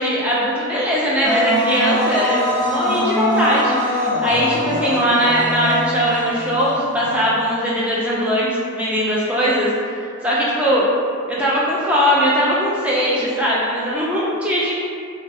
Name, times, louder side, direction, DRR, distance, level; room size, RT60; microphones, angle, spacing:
voice 1, 0.0-9.7 10.0-10.9 11.3-14.7, equal, 5° right, -7 dB, 0.3 m, -20 dB
sound 1, 1.2-7.3, equal, 50° right, 0.7 m, -22 dB
2.8 x 2.3 x 2.5 m, 2.3 s
head